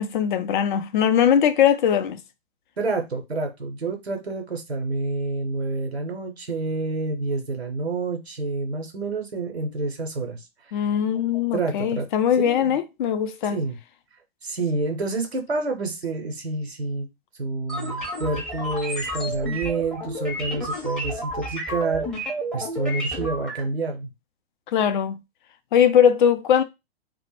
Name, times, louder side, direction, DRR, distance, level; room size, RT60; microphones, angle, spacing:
voice 1, 0.0-2.2 10.7-13.6 24.7-25.2 25.7-26.6, left 8 dB, 55° left, 0.4 m, -20 dB
voice 2, 2.8-10.4 10.7-10.8 11.5-12.1 12.4-12.7 13.5-13.7 14.4-17.1 17.4-22.2 22.5-24.1, right 3 dB, 90° right, 0.7 m, -28 dB
sound 1, 17.7-23.6, right 1 dB, 5° left, 0.6 m, -31 dB
2.1 x 2.0 x 3.0 m
figure-of-eight pair, 110°, 31 cm